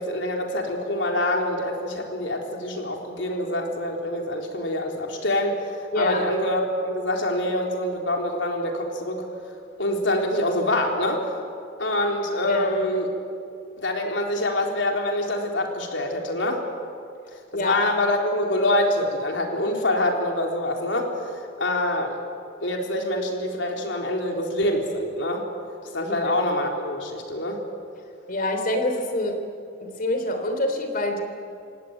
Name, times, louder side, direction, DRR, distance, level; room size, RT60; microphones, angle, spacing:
voice 1, 0.0-5.6 5.9-9.3 9.8-11.2 11.8-13.1 13.8-16.6 17.5-22.2 22.6-25.5 25.9-27.6, left 1 dB, 85° left, 2 dB, 3.8 m, -25 dB
voice 2, 5.9-6.2 12.5-12.7 17.5-17.8 28.3-29.4 29.8-31.2, left 1 dB, 50° left, 5 dB, 3.5 m, -26 dB
28.0 x 16.5 x 9.4 m, 2.5 s
head